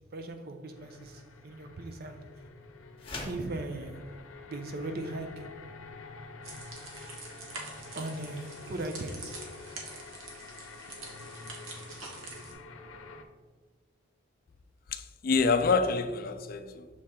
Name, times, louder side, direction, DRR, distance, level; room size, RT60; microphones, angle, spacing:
voice 1, 0.1-2.4 3.3-4.2 4.5-5.6 7.9-9.5, right 2 dB, 50° right, 0.5 m, -39 dB
sound 1, 0.7-13.2, left 4 dB, 85° left, 0.6 m, -48 dB
sound 2, 3.0-3.5, left 2 dB, 25° left, 1.0 m, -39 dB
sound 3, 6.4-12.5, right 3 dB, 85° right, 1.3 m, -45 dB
voice 2, 14.9-16.9, left 4 dB, 45° left, 0.4 m, -27 dB
6.3 x 3.6 x 4.2 m
head